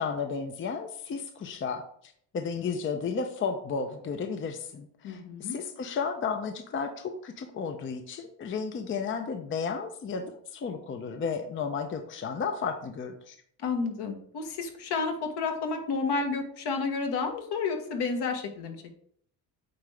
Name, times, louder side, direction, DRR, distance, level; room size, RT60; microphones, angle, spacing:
voice 1, 0.0-13.4, left 5 dB, 30° left, 6 dB, 0.6 m, -33 dB
voice 2, 5.0-5.6 13.6-18.7, left 4 dB, 65° left, 4 dB, 1.5 m, -31 dB
8.7 x 3.7 x 3.3 m, 0.62 s
cardioid pair, 115°, 42 cm